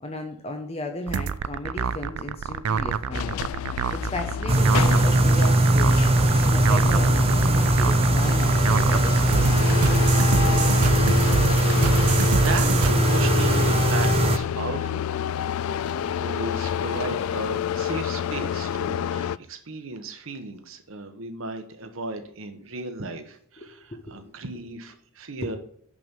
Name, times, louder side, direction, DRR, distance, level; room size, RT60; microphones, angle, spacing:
voice 1, 0.0-3.4 3.9-9.5 23.6-24.2 25.4-25.5, left 2 dB, 30° left, 4 dB, 0.9 m, -35 dB
sound 1, 1.1-12.9, right 6 dB, 85° right, 0.4 m, -28 dB
sound 2, 3.1-19.4, left 8 dB, 75° left, 0.3 m, -28 dB
sound 3, 4.5-14.4, right 2 dB, 30° right, 0.6 m, -20 dB
voice 2, 11.7-15.0 16.2-25.6, right 3 dB, 65° right, 7 dB, 1.1 m, -35 dB
6.1 x 6.0 x 7.0 m, 0.66 s
head